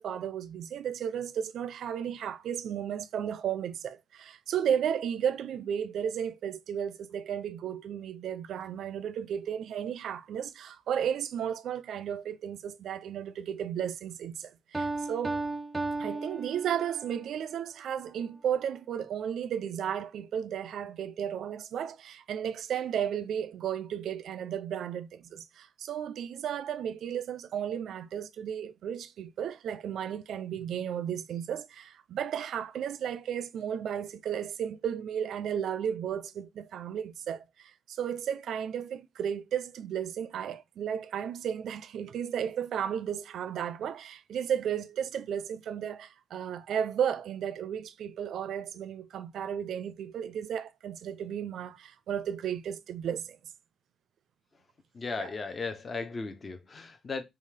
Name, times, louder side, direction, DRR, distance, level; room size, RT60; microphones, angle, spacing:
voice 1, 0.0-15.4 16.0-53.4 55.2-55.3, right 8 dB, 70° right, 0.4 m, -34 dB
Piano, 14.7-17.2, right 2 dB, 15° right, 0.5 m, -34 dB
voice 2, 54.9-57.2, left 4 dB, 35° left, 0.7 m, -36 dB
5.2 x 2.4 x 3.3 m
cardioid pair, 90°, 0 cm